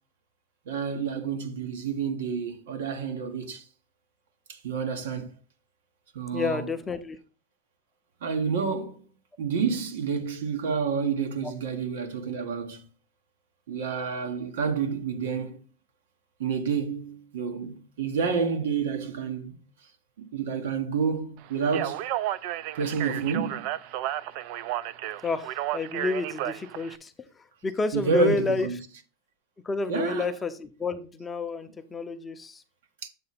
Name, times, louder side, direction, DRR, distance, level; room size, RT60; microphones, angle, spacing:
voice 1, 0.6-3.6 4.5-5.3 6.1-6.8 8.2-9.0 9.4-12.9 13.7-15.6 16.4-19.5 20.2-22.1 22.7-23.7 27.9-28.8 29.9-30.4 33.0-33.1, right 5 dB, 85° right, 1.4 m, -29 dB
voice 2, 6.3-7.2 11.4-11.5 25.2-28.7 29.6-32.6, left 3 dB, 10° left, 0.6 m, -30 dB
Speech, 21.6-27.0, right 13 dB, 50° right, 0.4 m, -32 dB
7.7 x 3.2 x 5.8 m
supercardioid pair, 155°, 0 cm